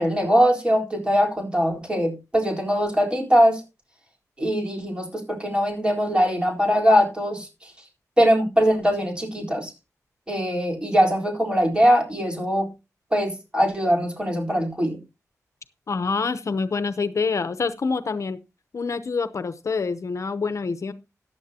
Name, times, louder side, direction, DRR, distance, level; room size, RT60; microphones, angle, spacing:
voice 1, 0.0-3.6 4.4-7.7 8.2-9.7 10.3-12.7 13.1-15.0, equal, 15° right, 0 dB, 4.1 m, -21 dB
voice 2, 15.9-18.4 18.7-20.9, left 4 dB, 55° left, 12 dB, 0.8 m, -26 dB
14.5 x 10.0 x 2.8 m, 0.28 s
wide cardioid pair, 120°, 6 cm